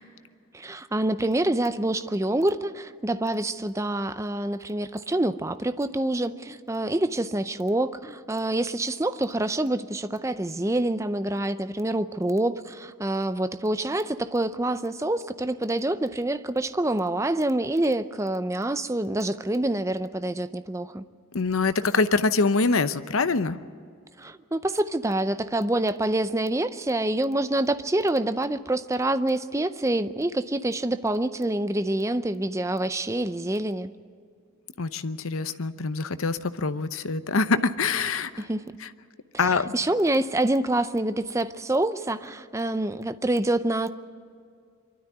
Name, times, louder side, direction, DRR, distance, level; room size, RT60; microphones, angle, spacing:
voice 1, 0.5-21.0 24.2-33.9 38.5-38.6 39.7-43.9, right 1 dB, 15° right, 12 dB, 0.5 m, -26 dB
voice 2, 21.3-23.6 34.8-38.5 38.8-38.9 39.4-39.7, left 4 dB, 75° left, 12 dB, 0.8 m, -25 dB
24.5 x 12.5 x 9.5 m, 2.2 s
head